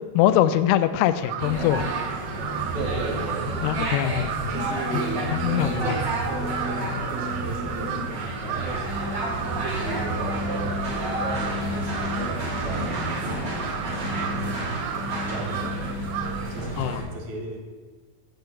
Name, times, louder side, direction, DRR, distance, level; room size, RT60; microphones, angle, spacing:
voice 1, 0.1-1.9 3.6-4.5 4.9-5.0 5.3-5.8 16.8-17.0, left 12 dB, 80° left, 12 dB, 2.4 m, -23 dB
Crow, 1.2-16.6, right 10 dB, 90° right, 2.8 m, -35 dB
sound 1, 1.4-17.0, right 1 dB, 30° right, 2.6 m, -30 dB
voice 2, 2.7-3.6 4.5-8.9 9.6-14.5 15.3-15.9 16.5-17.6, right 3 dB, 55° right, 1 dB, 2.9 m, -36 dB
sound 2, 8.8-17.0, left 1 dB, 45° left, 3.7 m, -35 dB
9.0 x 5.8 x 8.3 m, 1.4 s
omnidirectional pair, 4.9 m